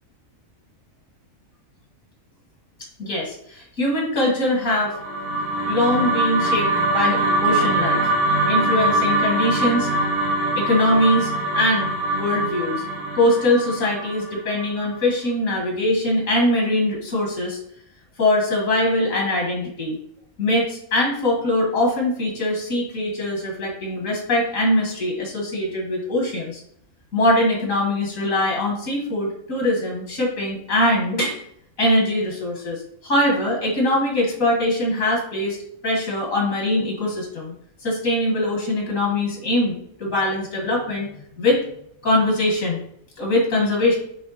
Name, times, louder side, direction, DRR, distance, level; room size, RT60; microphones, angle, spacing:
voice 1, 3.0-5.0 5.7-8.0 8.5-9.9 10.6-12.8 13.2-17.6 18.2-20.0 20.4-26.6 27.1-31.4 31.8-35.6 35.8-37.5 37.8-41.1 41.4-41.6 42.0-42.8 43.2-44.0, left 1 dB, 80° left, -2 dB, 2.1 m, -22 dB
sound 1, 4.7-15.0, right 1 dB, 85° right, 1.6 m, -23 dB
8.4 x 3.4 x 4.1 m, 0.70 s
omnidirectional pair, 1.4 m